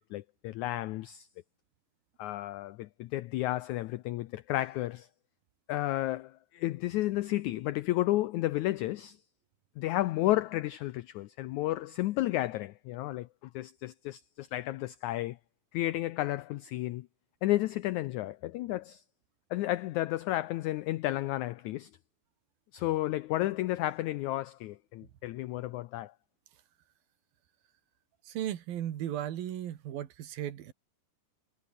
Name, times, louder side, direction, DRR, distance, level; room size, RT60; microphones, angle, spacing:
voice 1, 0.1-1.3 2.2-5.1 5.7-9.2 9.8-13.3 13.5-15.4 15.7-17.1 17.4-19.0 19.5-21.9 22.7-26.1, left 16 dB, 85° left, 1.7 m, -32 dB
voice 2, 28.2-30.7, right 11 dB, 80° right, 3.5 m, -36 dB
omnidirectional pair, 4.2 m